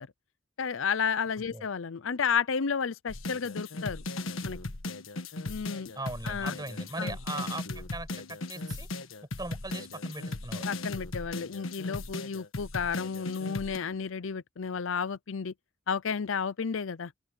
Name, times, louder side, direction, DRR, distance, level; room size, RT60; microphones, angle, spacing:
voice 1, 0.6-4.0 4.4-4.6 5.5-5.9 6.2-6.5 7.0-7.2 10.7-15.5 15.9-17.1, left 6 dB, 70° left, 0.6 m, -32 dB
sound 1, 3.1-13.8, left 2 dB, 90° left, 1.5 m, -37 dB
voice 2, 5.9-8.9 9.4-10.7, right 2 dB, 20° right, 6.2 m, -39 dB
open air
head